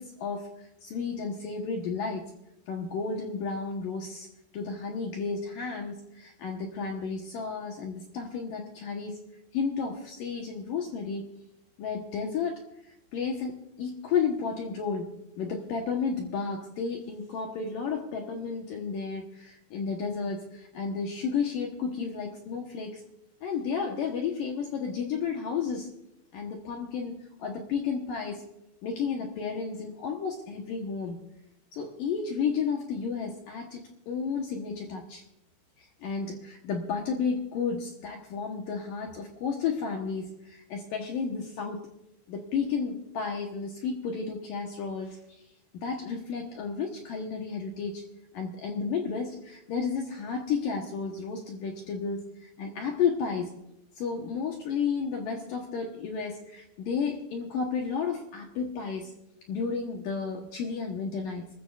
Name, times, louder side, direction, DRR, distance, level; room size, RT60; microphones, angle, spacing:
voice 1, 0.0-2.3 2.7-4.3 4.5-9.2 9.5-11.3 11.8-15.1 15.4-23.0 23.4-25.9 26.3-28.4 28.8-31.2 31.7-35.2 35.8-41.9 42.3-45.4 45.7-48.0 48.3-53.5 54.0-59.1 59.5-61.5, left 5 dB, 70° left, 2 dB, 2.1 m, -32 dB
26.0 x 14.0 x 2.4 m, 0.85 s
omnidirectional pair, 5.3 m